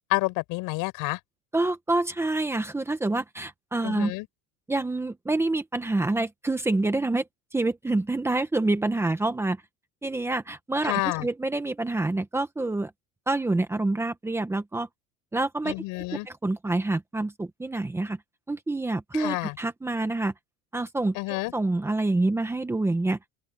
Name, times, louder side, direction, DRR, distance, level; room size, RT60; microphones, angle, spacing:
voice 1, 0.1-1.2 3.8-4.3 10.8-11.3 15.6-16.3 19.1-19.6 21.1-21.5, left 23 dB, 65° left, 7.8 m, -29 dB
voice 2, 1.5-4.1 4.7-7.2 7.5-9.6 10.0-12.9 13.3-14.9 15.3-15.7 16.1-18.2 18.5-20.3 20.7-21.2 21.5-23.2, right 2 dB, 5° right, 1.2 m, -27 dB
open air
cardioid pair, 180°, 35 cm